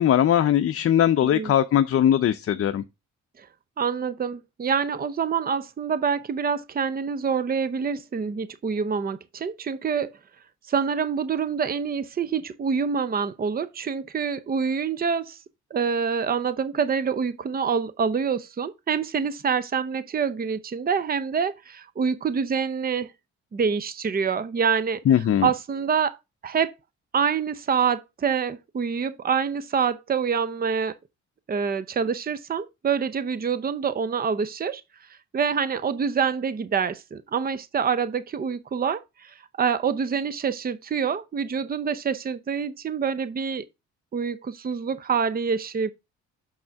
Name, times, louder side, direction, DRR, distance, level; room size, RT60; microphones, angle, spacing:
voice 1, 0.0-2.8 25.1-25.5, left 10 dB, 50° left, 0.6 m, -20 dB
voice 2, 3.8-10.1 10.7-15.4 15.7-23.1 23.5-25.0 25.4-26.1 26.4-26.7 27.1-30.9 31.5-34.8 35.3-43.7 44.1-45.9, right 6 dB, 30° right, 0.7 m, -26 dB
6.5 x 6.1 x 3.5 m
cardioid pair, 90°, 30 cm